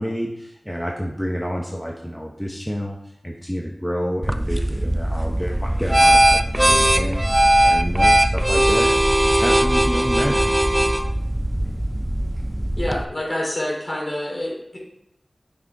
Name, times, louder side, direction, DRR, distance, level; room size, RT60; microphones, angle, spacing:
voice 1, 0.0-3.0 3.2-7.2 7.6-8.9 9.3-10.7, equal, ahead, 0 dB, 0.8 m, -28 dB
sound 1, 4.2-13.0, right 1 dB, 15° right, 0.5 m, -19 dB
voice 2, 12.8-14.8, left 1 dB, 35° left, -3 dB, 3.3 m, -27 dB
6.7 x 6.1 x 4.6 m, 0.84 s
wide cardioid pair, 65°, 0 cm